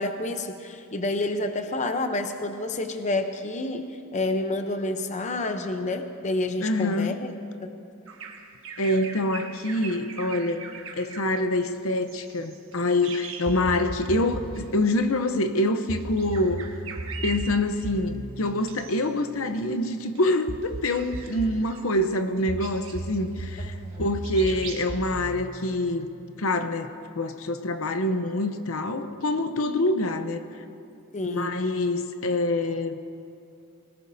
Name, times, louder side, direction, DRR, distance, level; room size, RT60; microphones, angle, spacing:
voice 1, 0.0-7.3 7.6-7.7 23.6-24.0 31.1-31.6, left 2 dB, 35° left, 6 dB, 0.7 m, -29 dB
voice 2, 6.6-7.2 8.8-16.7 17.2-26.1 26.4-30.4 31.3-33.0, left 1 dB, 70° left, 8 dB, 0.8 m, -26 dB
Bird vocalization bird call bird song, 8.1-14.1 14.4-14.7 15.7-18.0 18.5-19.1 19.4-24.0 24.2-24.9, right 6 dB, 65° right, 1.4 m, -42 dB
sound 1, 13.5-14.7 15.9-19.6 20.5-21.7 22.5-26.4, right 2 dB, 25° right, 0.5 m, -37 dB
25.0 x 18.5 x 2.7 m, 2.6 s
head